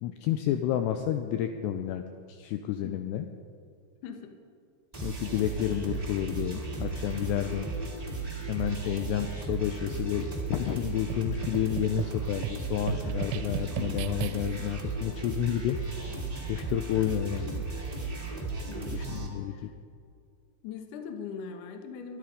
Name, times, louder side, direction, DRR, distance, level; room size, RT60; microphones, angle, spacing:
voice 1, 0.0-2.0 2.3-3.3 4.9-7.7 8.5-16.2 16.5-17.6 18.9-19.7, left 11 dB, 85° left, 7 dB, 2.5 m, -30 dB
voice 2, 4.0-4.3 7.4-7.7 13.8-13.9 18.7-19.0 19.5-19.7 20.6-22.2, left 6 dB, 70° left, 5 dB, 2.0 m, -41 dB
sound 1, 4.9-19.3, right 3 dB, 25° right, 0.8 m, -35 dB
sound 2, 11.1-14.7, right 13 dB, 85° right, 3.0 m, -37 dB
23.5 x 11.0 x 5.1 m, 2.3 s
omnidirectional pair, 5.4 m